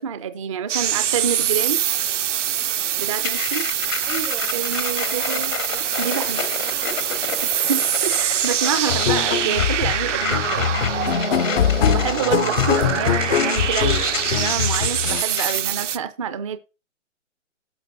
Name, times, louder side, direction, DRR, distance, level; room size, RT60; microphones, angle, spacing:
voice 1, 0.0-1.8 3.0-3.7 4.5-5.5 6.0-6.4 7.4-10.8 11.9-16.6, right 7 dB, 25° right, 0.4 m, -27 dB
sound 1, 0.7-16.0, right 10 dB, 70° right, 0.7 m, -24 dB
sound 2, 3.2-15.6, left 7 dB, 80° left, 1.4 m, -31 dB
voice 2, 4.0-4.7 5.0-7.1 13.2-13.5, right 4 dB, 90° right, 3.9 m, -38 dB
sound 3, 8.9-15.2, left 10 dB, 55° left, 0.5 m, -23 dB
16.5 x 5.8 x 2.6 m
hypercardioid pair, 140°, 38 cm